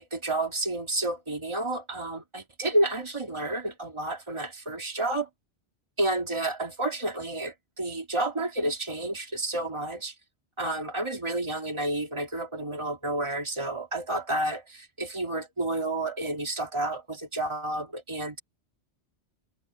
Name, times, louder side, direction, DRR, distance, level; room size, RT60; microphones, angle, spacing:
voice 1, 0.0-5.3 6.0-10.1 10.6-18.4, right 1 dB, 25° right, 2.1 m, -30 dB
omnidirectional pair, 1.2 m